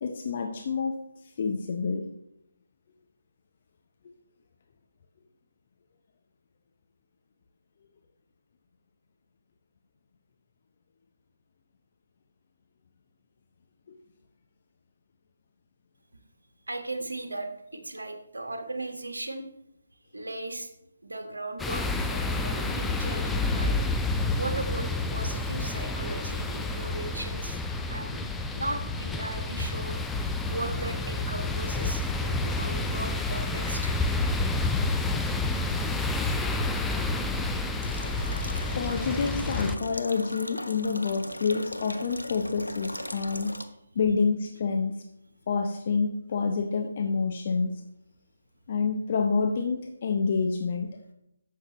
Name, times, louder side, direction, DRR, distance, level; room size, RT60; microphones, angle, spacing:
voice 1, 0.0-1.0 1.4-2.1 38.7-43.6 43.9-45.0 45.5-47.7 48.7-51.0, left 5 dB, 40° left, 4 dB, 0.7 m, -28 dB
voice 2, 16.7-19.4 20.1-20.7 21.0-23.8 24.3-27.6 27.9-28.3 28.5-30.1 30.5-34.0, right 2 dB, 70° right, 5 dB, 1.6 m, -37 dB
sound 1, 21.6-39.8, left 2 dB, 5° left, 0.4 m, -29 dB
sound 2, 37.8-43.6, left 1 dB, 85° left, 0.9 m, -39 dB
11.5 x 7.7 x 3.1 m, 0.81 s
figure-of-eight pair, 145°, 0 cm